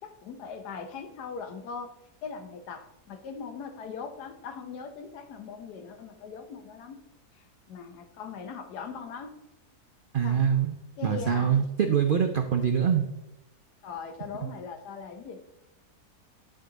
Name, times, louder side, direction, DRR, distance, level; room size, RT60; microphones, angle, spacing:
voice 1, 0.0-1.9 2.2-7.0 7.3-9.3 10.2-10.5 11.0-11.6 13.8-15.4, left 5 dB, 90° left, 7 dB, 1.4 m, -40 dB
voice 2, 10.1-10.7 11.0-13.1, right 7 dB, 85° right, 5 dB, 0.4 m, -24 dB
10.5 x 3.9 x 3.9 m, 0.96 s
omnidirectional pair, 1.7 m